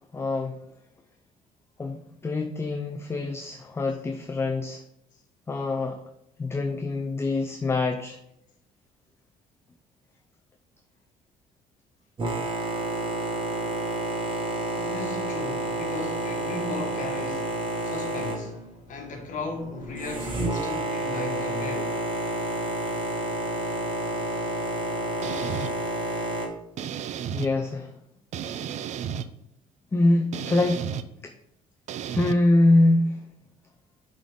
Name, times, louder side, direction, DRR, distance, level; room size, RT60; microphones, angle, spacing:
voice 1, 0.1-0.6 1.8-4.8 5.5-6.0 6.4-8.2 27.3-28.0 29.9-30.8 31.2-31.3 32.1-33.2, left 2 dB, 15° left, 0.5 m, -24 dB
Boat Water vehicle, 12.2-26.5, right 1 dB, 35° right, 1.6 m, -30 dB
voice 2, 14.7-17.6 17.8-18.6 18.9-22.0, left 3 dB, 55° left, 1.5 m, -36 dB
sound 1, 25.2-25.7 26.8-27.5 28.3-29.3 30.3-31.0 31.9-32.3, right 8 dB, 50° right, 0.4 m, -32 dB
8.7 x 3.9 x 3.6 m
cardioid pair, 120°, 15 cm